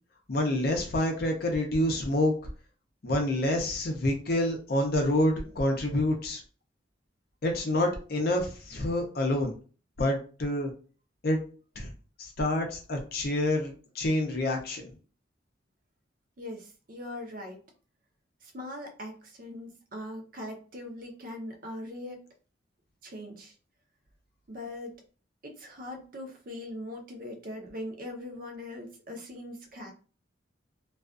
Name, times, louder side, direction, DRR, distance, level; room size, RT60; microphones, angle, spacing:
voice 1, 0.3-2.3 3.0-6.4 7.4-9.5 10.0-10.7 11.2-11.4 11.8-11.9 12.2-14.8, left 1 dB, 50° left, 2 dB, 0.5 m, -27 dB
voice 2, 16.4-17.6 18.4-22.2 23.0-23.5 24.5-24.9 25.4-29.9, left 1 dB, 45° right, 3 dB, 0.6 m, -41 dB
2.3 x 2.3 x 2.4 m, 0.37 s
head